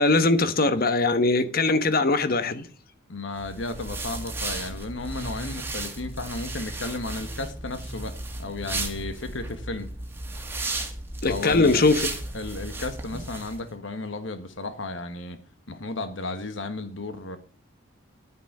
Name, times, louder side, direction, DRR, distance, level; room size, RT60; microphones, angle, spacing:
voice 1, 0.0-2.7 11.2-12.0, left 3 dB, 50° left, 1.1 m, -21 dB
voice 2, 3.1-9.9 11.3-11.8 12.3-15.4 15.7-17.4, left 2 dB, 70° left, 1.4 m, -34 dB
sound 1, 3.4-13.6, right 2 dB, 10° right, 1.8 m, -34 dB
9.9 x 9.8 x 6.6 m
head